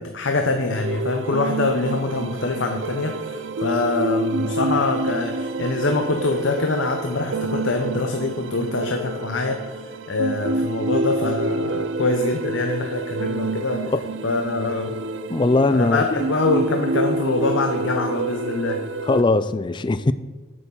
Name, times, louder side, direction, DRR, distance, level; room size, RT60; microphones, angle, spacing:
voice 1, 0.0-9.8 10.1-13.9 14.2-15.0 15.7-18.8, left 3 dB, 85° left, 0.8 m, -24 dB
sound 1, 0.8-19.2, right 2 dB, 85° right, 0.6 m, -28 dB
voice 2, 15.3-16.1 19.1-20.1, left 2 dB, 25° left, 0.3 m, -20 dB
8.6 x 6.8 x 5.5 m
head